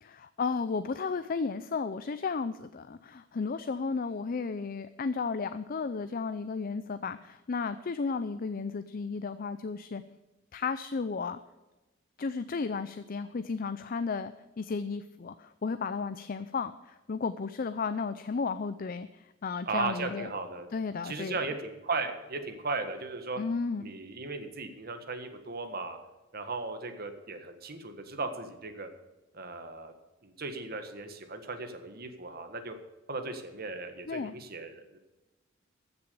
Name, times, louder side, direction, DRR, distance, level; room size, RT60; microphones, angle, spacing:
voice 1, 0.0-10.0 10.5-11.4 12.2-20.3 20.7-21.4 23.4-23.9 34.1-34.3, left 4 dB, 45° left, 12 dB, 0.5 m, -33 dB
voice 2, 19.6-20.7 21.0-23.4 23.8-26.0 26.3-28.9 29.3-29.9 30.2-32.7 33.1-35.0, right 3 dB, 50° right, 7 dB, 1.6 m, -36 dB
15.0 x 7.0 x 6.9 m, 1.1 s
head